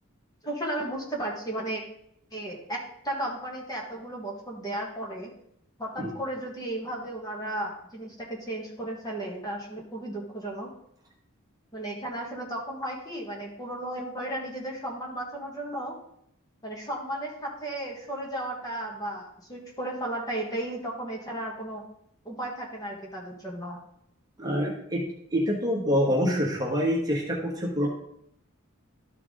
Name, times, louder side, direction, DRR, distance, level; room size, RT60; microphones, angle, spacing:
voice 1, 0.4-1.8 2.3-2.8 3.0-5.3 5.8-10.7 11.7-15.9 16.6-21.8 22.2-23.8, right 1 dB, 20° left, -2 dB, 1.6 m, -34 dB
voice 2, 24.4-25.0 25.3-27.9, equal, 20° right, -2 dB, 1.4 m, -26 dB
12.5 x 4.7 x 3.8 m, 0.73 s
head